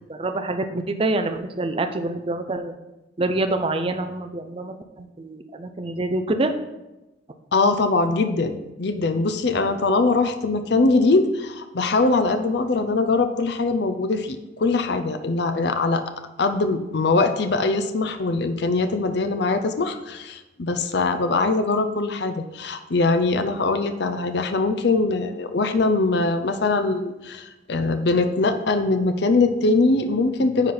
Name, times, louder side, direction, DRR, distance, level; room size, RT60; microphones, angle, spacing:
voice 1, 0.1-2.7 3.2-6.5, right 2 dB, 30° right, 7 dB, 0.5 m, -26 dB
voice 2, 7.5-16.0 16.4-30.7, left 3 dB, 60° left, 8 dB, 0.5 m, -22 dB
9.7 x 4.3 x 4.0 m, 1.0 s
head